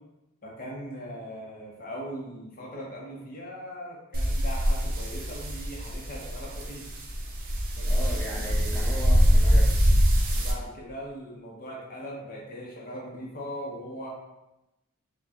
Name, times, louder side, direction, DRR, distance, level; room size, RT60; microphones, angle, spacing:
voice 1, 0.4-6.8 7.8-8.0 8.5-8.6 10.3-14.1, equal, 40° left, -3 dB, 0.8 m, -40 dB
sound 1, 4.1-10.5, equal, 40° right, 0.6 m, -24 dB
voice 2, 7.9-9.7, left 1 dB, 5° left, -6 dB, 0.3 m, -37 dB
4.3 x 2.3 x 2.8 m, 0.96 s
head